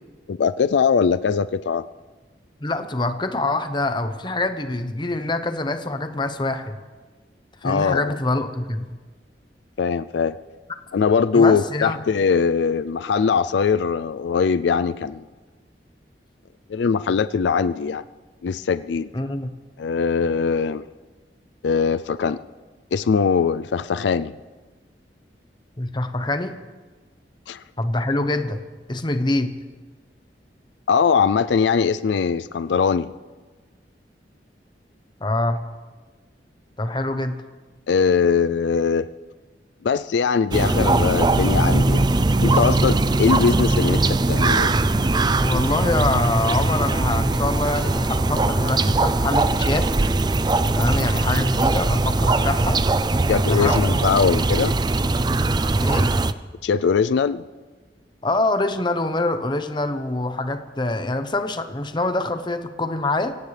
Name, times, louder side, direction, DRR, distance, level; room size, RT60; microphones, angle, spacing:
voice 1, 0.3-1.8 7.6-8.2 9.8-10.4 10.9-15.2 16.7-18.0 18.4-19.1 19.8-20.8 21.6-22.4 22.9-24.3 27.5-27.6 30.9-33.1 37.9-39.1 39.8-42.1 42.4-44.8 45.5-45.6 53.3-54.7 56.6-57.4, left 5 dB, 85° left, 14 dB, 0.4 m, -21 dB
voice 2, 2.6-6.8 7.6-8.8 11.3-12.0 19.1-19.5 25.8-26.6 27.8-28.6 28.9-29.5 35.2-35.6 36.8-37.4 45.4-50.0 50.7-52.8 53.5-53.8 55.8-56.1 58.2-63.4, left 2 dB, 25° left, 8 dB, 0.9 m, -25 dB
sound 1, 40.5-56.3, right 2 dB, 25° right, 0.5 m, -20 dB
25.0 x 16.5 x 3.4 m, 1.3 s
head